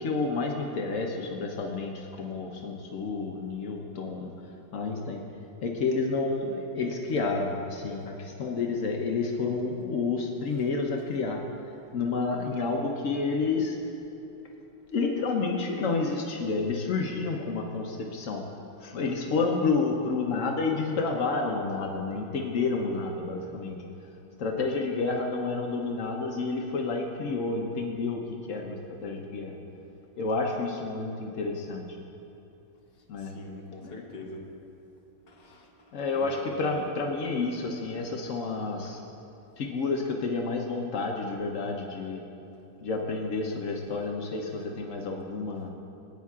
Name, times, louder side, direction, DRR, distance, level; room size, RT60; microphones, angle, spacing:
voice 1, 0.0-4.3 4.7-5.2 5.6-11.4 11.9-13.7 14.9-18.4 18.8-23.8 24.4-28.2 28.5-28.8 29.0-29.5 30.2-31.9 33.1-33.3 33.8-34.0 35.9-39.0 39.6-42.2 42.8-45.7, left 4 dB, 90° left, 1 dB, 0.6 m, -30 dB
voice 2, 33.2-34.4 35.3-35.7 36.1-36.8 37.9-38.0 38.8-39.0, left 3 dB, 40° left, 0 dB, 0.9 m, -42 dB
21.0 x 9.2 x 2.4 m, 2.8 s
omnidirectional pair, 2.4 m